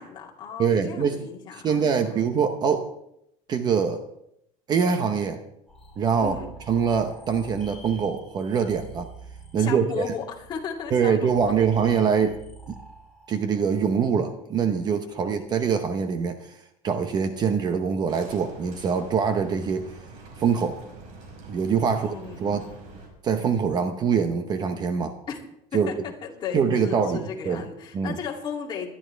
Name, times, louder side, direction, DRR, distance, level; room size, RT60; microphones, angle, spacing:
voice 1, 0.0-2.3 6.2-6.5 9.6-11.5 15.1-15.6 21.8-22.6 25.3-25.4 25.7-25.9 26.2-28.9, left 6 dB, 30° left, -2 dB, 2.6 m, -35 dB
voice 2, 0.6-1.2 1.6-2.9 3.5-4.0 4.7-5.4 6.0-6.4 6.7-9.1 9.5-10.0 10.9-12.4 12.7-12.8 13.3-16.6 16.8-19.9 20.4-20.8 21.5-22.7 23.2-25.2 25.7-25.9 26.5-27.6 27.9-28.2, right 6 dB, 30° right, 8 dB, 0.8 m, -24 dB
sound 1, 5.7-15.3, right 3 dB, 5° left, 3.4 m, -47 dB
sound 2, 18.1-23.1, right 2 dB, 70° right, 5.1 m, -44 dB
20.0 x 12.5 x 3.4 m, 0.78 s
cardioid pair, 175°, 15 cm